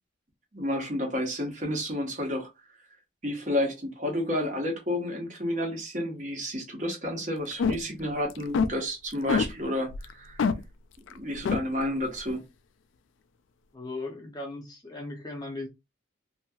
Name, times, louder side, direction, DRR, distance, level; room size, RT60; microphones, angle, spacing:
voice 1, 0.5-2.5 3.2-10.4 11.1-12.5, left 1 dB, 40° right, 1.0 m, -31 dB
sound 1, 7.5-8.0 8.3-8.7 9.3-9.5 9.9-10.1 10.4-10.6 11.1-11.2 11.5-11.6, left 5 dB, 75° left, 0.4 m, -24 dB
voice 2, 13.7-15.7, left 2 dB, 20° left, 0.6 m, -37 dB
2.9 x 2.8 x 2.3 m
head